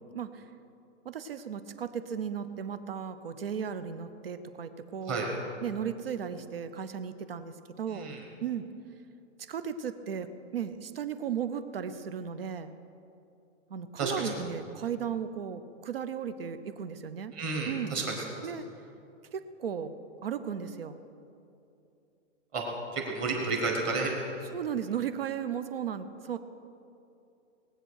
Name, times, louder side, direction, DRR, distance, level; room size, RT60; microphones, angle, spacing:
voice 1, 0.1-0.4 1.0-5.3 5.6-8.1 8.4-8.7 9.4-12.7 13.7-17.3 17.7-18.0 18.4-18.6 19.3-19.9 20.2-21.0 24.5-26.4, right 8 dB, 50° right, 11 dB, 0.7 m, -35 dB
voice 2, 7.9-8.2 14.0-14.3 17.3-18.5 22.5-22.6 22.9-24.1, right 3 dB, 15° right, 0 dB, 1.2 m, -31 dB
19.5 x 7.9 x 6.4 m, 2.7 s
hypercardioid pair, 175°, 37 cm